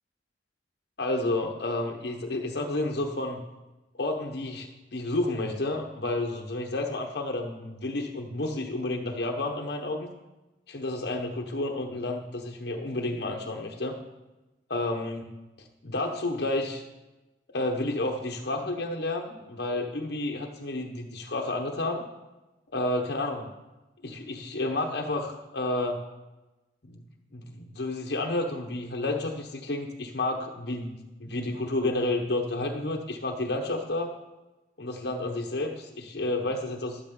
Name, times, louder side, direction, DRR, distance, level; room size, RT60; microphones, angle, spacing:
voice 1, 1.0-3.4 3.9-10.1 10.7-13.9 14.7-15.2 15.6-16.8 17.5-22.0 22.7-23.5 24.0-26.0 26.8-27.0 27.3-34.1 34.8-37.0, left 2 dB, 60° left, 1 dB, 1.0 m, -30 dB
12.5 x 12.0 x 3.8 m, 1.1 s
head